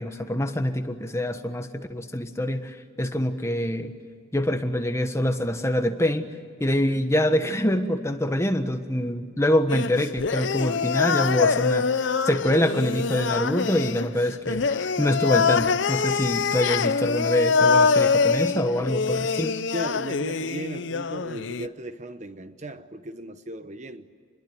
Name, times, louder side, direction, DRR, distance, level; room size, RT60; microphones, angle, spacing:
voice 1, 0.0-3.9 4.3-6.3 6.6-19.6, left 1 dB, 15° left, 7 dB, 1.3 m, -25 dB
sound 1, 9.7-21.7, left 5 dB, 65° left, 0.6 m, -24 dB
voice 2, 19.7-24.1, right 1 dB, 35° right, 10 dB, 0.9 m, -36 dB
27.0 x 21.5 x 9.7 m, 2.1 s
head